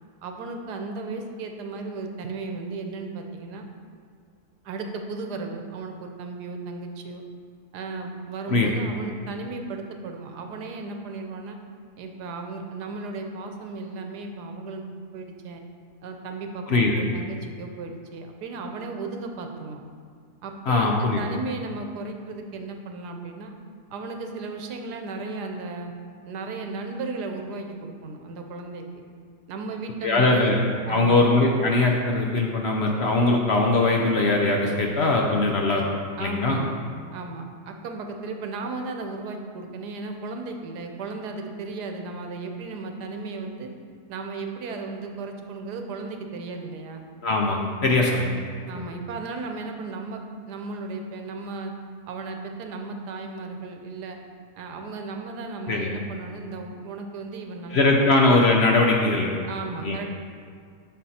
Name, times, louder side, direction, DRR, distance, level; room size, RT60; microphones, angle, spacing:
voice 1, 0.2-3.7 4.6-7.2 7.7-11.6 12.0-14.9 15.1-15.6 16.0-19.8 20.4-23.5 23.9-25.9 26.2-29.0 29.5-30.5 30.9-31.3 36.2-36.7 37.1-43.7 44.1-47.1 47.9-48.2 48.7-51.7 52.1-54.2 54.6-58.2 59.5-60.1, right 3 dB, 85° right, 4 dB, 1.3 m, -35 dB
voice 2, 20.7-21.2 30.0-30.6 30.9-35.9 36.2-36.6 47.2-48.3 48.8-48.9 55.7-55.9 57.7-59.4 59.8-60.1, left 2 dB, 55° left, 0 dB, 0.8 m, -21 dB
7.7 x 6.4 x 4.2 m, 2.1 s
omnidirectional pair, 1.7 m